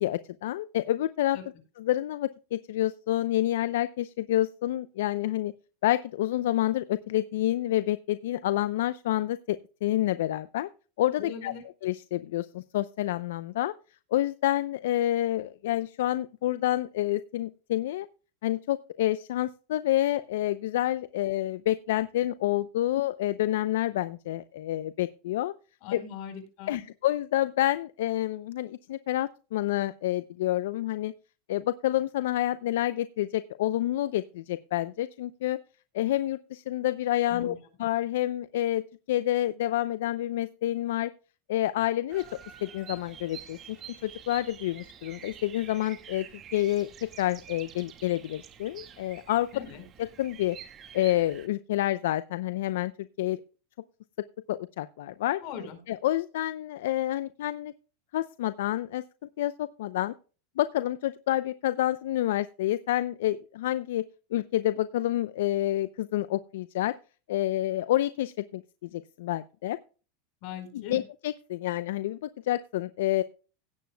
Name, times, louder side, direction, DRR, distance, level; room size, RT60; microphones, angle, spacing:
voice 1, 0.0-1.4 1.8-5.5 5.8-10.7 11.0-11.5 11.8-13.7 14.1-18.1 18.4-25.5 25.9-26.0 26.7-31.1 31.5-35.6 35.9-38.8 39.1-41.1 41.5-43.8 44.0-46.3 46.5-46.9 47.2-49.5 50.2-50.6 50.9-52.9 53.2-53.4 54.5-55.4 55.9-57.7 58.1-60.1 60.6-64.0 64.3-66.9 67.3-69.8 70.7-73.2, left 14 dB, 80° left, 14 dB, 0.6 m, -28 dB
voice 2, 11.2-11.6 25.8-26.9 37.3-37.7 49.5-49.8 55.4-55.8 70.4-71.0, left 7 dB, 60° left, 8 dB, 4.5 m, -40 dB
Bird vocalization bird call bird song, 42.1-51.5, right 8 dB, 35° right, 1.8 m, -48 dB
17.0 x 9.1 x 2.3 m, 0.35 s
supercardioid pair, 125°, 0 cm